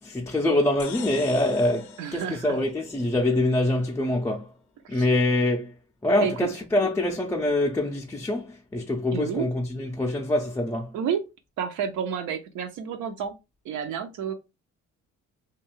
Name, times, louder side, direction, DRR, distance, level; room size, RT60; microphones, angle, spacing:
voice 1, 0.0-4.5 4.9-5.7 6.0-10.9, left 1 dB, 10° left, 0.4 m, -25 dB
sound 1, 0.8-3.4, left 11 dB, 70° left, 0.4 m, -44 dB
voice 2, 2.0-2.6 4.8-5.1 6.2-6.3 9.1-9.5 10.9-11.2 11.6-13.4 13.6-14.3, right 8 dB, 80° right, 0.5 m, -30 dB
2.6 x 2.3 x 3.0 m
cardioid pair, 90°, 30 cm